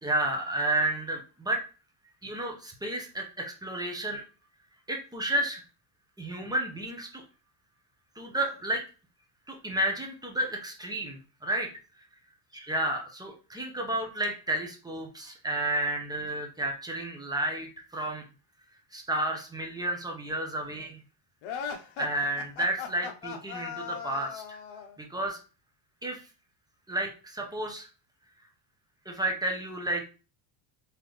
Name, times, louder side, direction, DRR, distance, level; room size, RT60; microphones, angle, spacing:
voice 1, 0.0-1.6 2.2-4.2 4.9-5.6 6.2-7.2 8.2-8.8 9.5-11.7 12.7-18.2 18.9-21.0 22.0-24.4 25.0-25.4 26.0-26.2 26.9-27.9 29.1-30.1, right 1 dB, 10° right, 1 dB, 0.9 m, -31 dB
sound 1, 21.4-25.0, left 7 dB, 70° left, 0.9 m, -38 dB
3.9 x 3.3 x 3.1 m, 0.35 s
cardioid pair, 125°, 49 cm